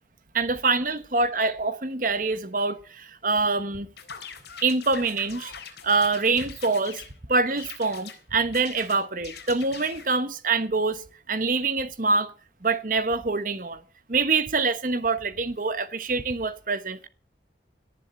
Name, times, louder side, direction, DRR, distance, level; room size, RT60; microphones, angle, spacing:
voice 1, 0.3-3.9 4.6-5.5 5.8-7.0 7.3-11.0 11.3-12.3 12.6-13.8 14.1-17.1, right 3 dB, 45° right, 1.2 m, -25 dB
sound 1, 4.0-7.1 7.6-8.2 8.5-10.1, left 7 dB, 70° left, 3.9 m, -42 dB
18.0 x 7.5 x 8.0 m
head